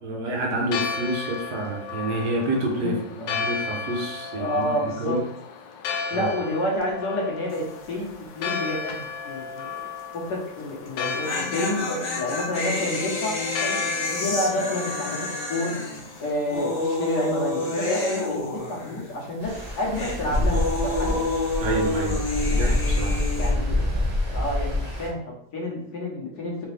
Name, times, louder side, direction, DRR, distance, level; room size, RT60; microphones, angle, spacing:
voice 1, 0.0-5.2 6.1-6.3 21.6-22.2 22.5-23.2, right 2 dB, 70° right, 0 dB, 1.5 m, -28 dB
Church bell, 0.6-17.2, left 5 dB, 90° left, 1.3 m, -34 dB
voice 2, 4.3-5.2 6.1-8.1 8.3-9.8 10.1-15.7 16.2-21.2 23.3-23.9 24.3-26.7, left 1 dB, 65° left, -2 dB, 1.6 m, -29 dB
sound 1, 7.5-7.9 8.1-8.2 10.9-19.2 19.5-23.5, left 2 dB, 40° left, 1.0 m, -29 dB
Stream, 19.4-25.1, left 1 dB, 45° right, 0.5 m, -26 dB
4.0 x 3.6 x 3.2 m, 0.74 s
omnidirectional pair, 1.9 m